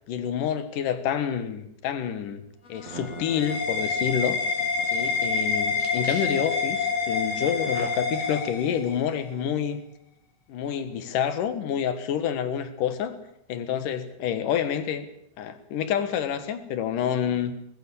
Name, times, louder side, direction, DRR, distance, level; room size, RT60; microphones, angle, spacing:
voice 1, 0.1-2.4 2.7-4.4 4.9-9.8 10.5-13.1 13.5-15.1 15.4-17.5, left 8 dB, 60° left, 11 dB, 2.4 m, -28 dB
sound 1, 2.5-2.6 2.9-5.3 5.7-6.6 7.5-7.9, right 3 dB, 30° right, 2.7 m, -43 dB
sound 2, 2.7-9.1, left 4 dB, 40° left, 2.8 m, -27 dB
20.0 x 15.5 x 8.6 m, 0.75 s
omnidirectional pair, 5.4 m